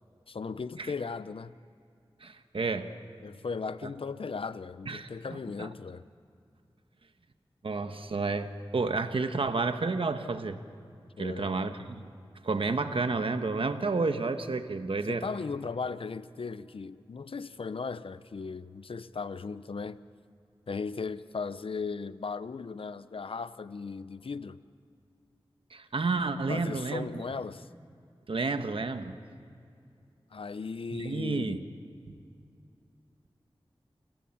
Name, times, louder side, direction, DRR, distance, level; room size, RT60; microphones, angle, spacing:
voice 1, 0.3-1.6 3.2-6.0 11.2-11.6 15.1-20.0 20.7-24.6 26.5-27.7 30.3-31.6, left 4 dB, 70° left, 0.7 m, -37 dB
voice 2, 2.2-2.9 3.8-3.9 4.9-5.1 5.6-5.7 7.6-10.6 11.2-12.0 12.4-15.3 25.7-27.1 28.3-29.1 30.9-31.6, right 3 dB, 70° right, 1.3 m, -30 dB
29.5 x 16.5 x 7.3 m
wide cardioid pair, 50°, 10 cm